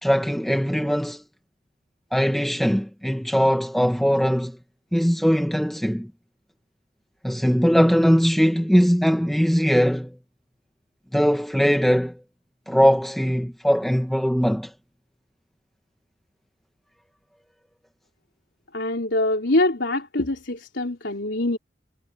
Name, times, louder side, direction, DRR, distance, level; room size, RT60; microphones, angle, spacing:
voice 1, 0.0-1.2 2.1-4.6 4.9-6.1 7.2-10.2 11.1-12.2 12.7-14.7, equal, ahead, 0.9 m, -20 dB
voice 2, 18.7-21.6, left 2 dB, 75° left, 3.7 m, -24 dB
head